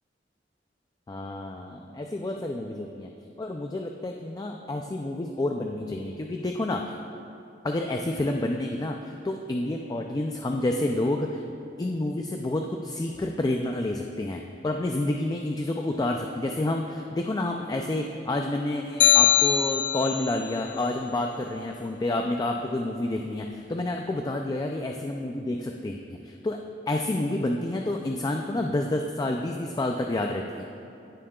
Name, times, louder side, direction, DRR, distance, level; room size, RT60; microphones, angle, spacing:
voice 1, 1.1-3.1 3.4-6.8 7.6-11.4 11.8-26.6 26.9-30.9, left 2 dB, 20° left, 3 dB, 0.3 m, -29 dB
sound 1, 19.0-20.4, left 9 dB, 85° left, 0.4 m, -21 dB
16.0 x 7.2 x 2.3 m, 2.6 s
head